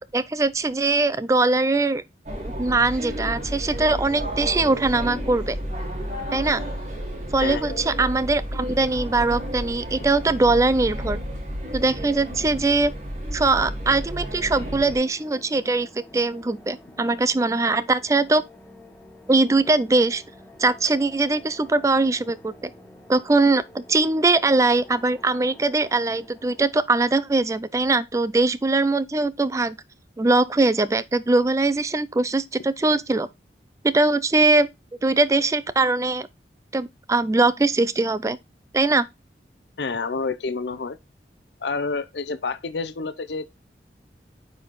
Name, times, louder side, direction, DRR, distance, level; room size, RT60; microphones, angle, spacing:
voice 1, 0.1-2.0 2.4-5.6 6.3-6.6 7.3-11.2 11.7-12.9 13.3-15.9 16.1-18.4 19.3-20.2 20.6-22.7 23.1-29.8 30.2-33.3 33.8-34.7 35.0-36.3 36.7-38.4 38.7-39.1, right 3 dB, 15° right, 0.3 m, -21 dB
sound 1, 2.3-15.0, equal, 40° right, 1.9 m, -32 dB
sound 2, 6.6-6.9 8.5-8.9 10.4-10.6 12.4-12.6 14.5-14.9 17.0-17.2, right 1 dB, 55° left, 1.3 m, -44 dB
voice 2, 7.4-7.8 39.8-41.0 41.6-43.5, left 4 dB, 75° left, 0.6 m, -29 dB
sound 3, 14.0-28.7, left 1 dB, 10° left, 2.6 m, -49 dB
9.2 x 4.1 x 3.0 m
head